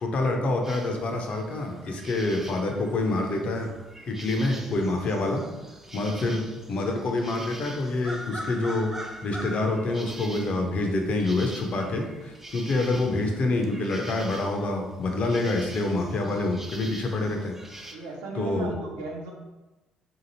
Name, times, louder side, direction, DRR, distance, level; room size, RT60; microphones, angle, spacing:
voice 1, 0.0-3.7 4.1-5.4 5.9-18.0 18.3-18.7, left 2 dB, 45° left, 2 dB, 0.5 m, -27 dB
sound 1, 0.6-17.9, right 1 dB, 10° right, 0.4 m, -43 dB
voice 2, 17.9-19.3, right 2 dB, 70° right, 0 dB, 0.5 m, -37 dB
2.8 x 2.5 x 2.8 m, 1.1 s
figure-of-eight pair, 50°, 3 cm